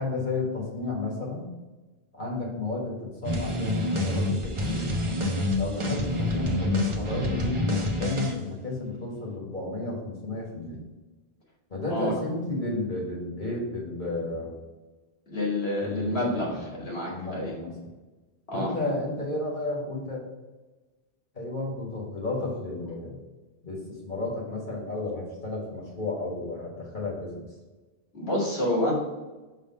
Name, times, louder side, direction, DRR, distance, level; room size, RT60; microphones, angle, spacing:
voice 1, 0.0-1.5 2.1-4.9 5.6-10.8 11.7-14.5 15.8-16.8 17.1-17.7 18.5-20.2 21.3-23.2 23.6-27.5, left 2 dB, 50° left, -3 dB, 1.8 m, -32 dB
sound 1, 3.2-8.4, left 1 dB, 35° right, 0.6 m, -27 dB
voice 2, 15.3-16.5 16.8-17.5 18.5-18.7 28.1-28.9, left 1 dB, 75° left, -4 dB, 2.3 m, -28 dB
5.7 x 3.5 x 5.2 m, 1.2 s
omnidirectional pair, 1.1 m